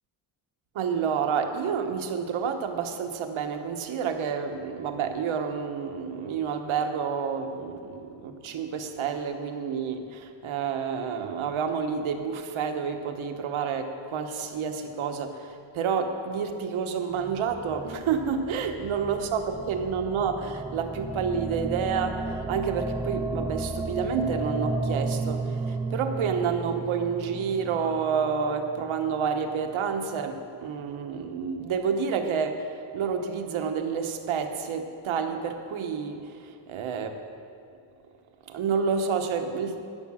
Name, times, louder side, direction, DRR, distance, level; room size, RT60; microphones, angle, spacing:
voice 1, 0.7-37.2 38.5-39.8, right 6 dB, 85° right, 6 dB, 1.2 m, -29 dB
sound 1, 17.1-29.4, right 3 dB, 10° right, 0.3 m, -34 dB
13.0 x 9.9 x 6.3 m, 2.5 s
wide cardioid pair, 175°, 47 cm